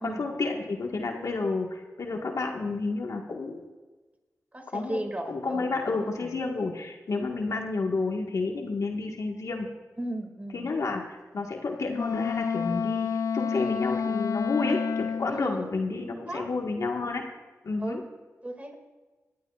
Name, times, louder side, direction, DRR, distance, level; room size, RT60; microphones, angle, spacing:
voice 1, 0.0-3.7 4.7-5.0 5.3-9.7 10.5-17.2 17.6-18.0, left 3 dB, 70° left, 1 dB, 1.6 m, -30 dB
voice 2, 4.5-5.7 10.0-10.7 15.3-15.7 16.3-16.5 17.8-18.0 18.4-18.7, right 1 dB, 25° right, 4 dB, 2.3 m, -35 dB
Wind instrument woodwind instrument, 11.9-15.4, left 6 dB, 85° left, 0.4 m, -29 dB
18.5 x 12.0 x 2.5 m, 1.3 s
cardioid pair, 55°, 6 cm